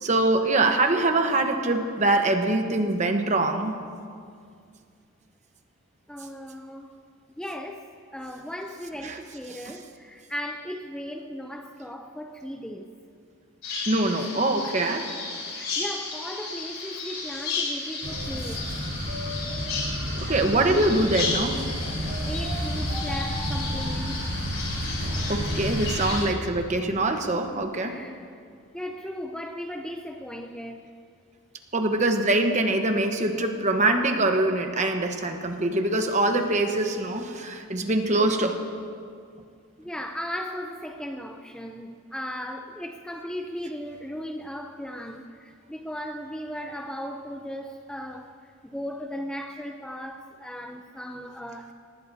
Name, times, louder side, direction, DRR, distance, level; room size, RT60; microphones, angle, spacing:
voice 1, 0.0-3.7 9.0-9.2 9.7-9.8 13.9-15.1 18.5-18.6 20.2-21.6 25.2-28.0 31.7-38.6, right 2 dB, 35° right, 5 dB, 1.1 m, -24 dB
voice 2, 6.1-6.9 7.4-7.9 8.1-12.9 15.5-18.7 22.0-24.2 27.8-28.4 28.7-30.9 39.8-51.7, equal, 5° left, 3 dB, 0.5 m, -37 dB
Bird vocalization bird call bird song, 13.6-26.3, left 4 dB, 60° left, 4.5 m, -34 dB
sound 1, 18.0-26.3, equal, 55° right, 5.1 m, -31 dB
23.5 x 19.5 x 2.8 m, 2.2 s
head